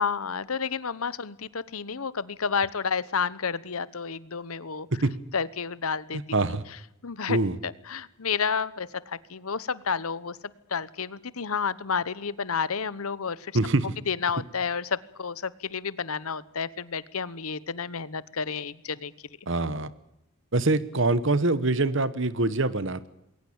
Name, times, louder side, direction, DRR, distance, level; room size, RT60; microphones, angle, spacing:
voice 1, 0.0-4.9 5.3-6.2 7.0-7.4 7.6-10.4 10.7-13.5 14.1-19.1, left 6 dB, 85° left, 19 dB, 1.0 m, -30 dB
voice 2, 6.1-6.6 7.3-7.6 13.5-13.9 19.5-19.9 20.5-23.1, right 2 dB, 60° right, 16 dB, 1.3 m, -24 dB
21.5 x 18.5 x 8.8 m, 0.82 s
head